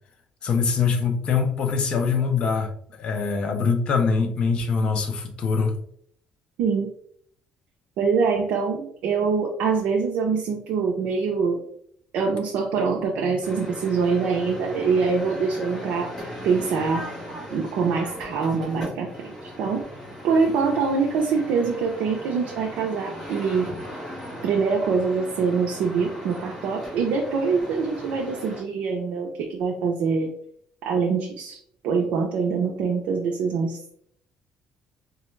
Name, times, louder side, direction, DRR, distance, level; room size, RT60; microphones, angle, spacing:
voice 1, 0.4-5.7, left 5 dB, 40° left, 4 dB, 0.6 m, -23 dB
voice 2, 6.6-6.9 8.0-11.6 12.1-17.1 17.5-19.8 20.2-23.7 24.4-30.3 30.8-31.6 31.8-33.8, right 5 dB, 75° right, 0 dB, 0.6 m, -24 dB
sound 1, 13.4-28.6, equal, 15° left, 1.3 m, -38 dB
4.1 x 2.3 x 3.1 m, 0.64 s
cardioid pair, 165°, 3 cm